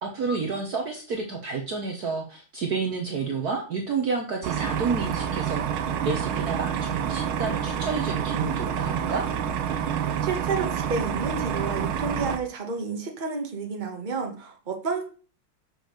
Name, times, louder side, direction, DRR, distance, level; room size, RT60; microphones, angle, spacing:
voice 1, 0.0-9.3, right 4 dB, 50° right, 2 dB, 1.4 m, -30 dB
sound 1, 4.4-12.4, right 8 dB, 75° right, 1.6 m, -28 dB
voice 2, 10.2-15.0, right 4 dB, 25° right, 3 dB, 1.3 m, -30 dB
6.1 x 5.1 x 6.5 m, 0.37 s
omnidirectional pair, 2.4 m